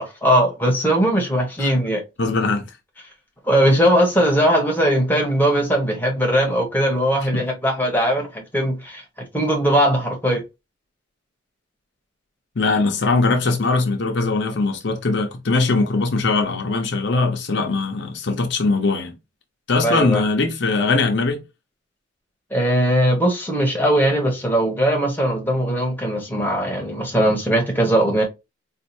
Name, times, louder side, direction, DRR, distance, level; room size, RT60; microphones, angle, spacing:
voice 1, 0.0-2.0 3.4-9.0 9.3-10.4 19.8-20.2 22.5-28.2, equal, 10° left, 1.0 m, -19 dB
voice 2, 2.2-2.7 7.3-7.4 12.6-19.1 19.7-21.4, left 3 dB, 55° left, 0.7 m, -21 dB
4.4 x 2.5 x 2.6 m
head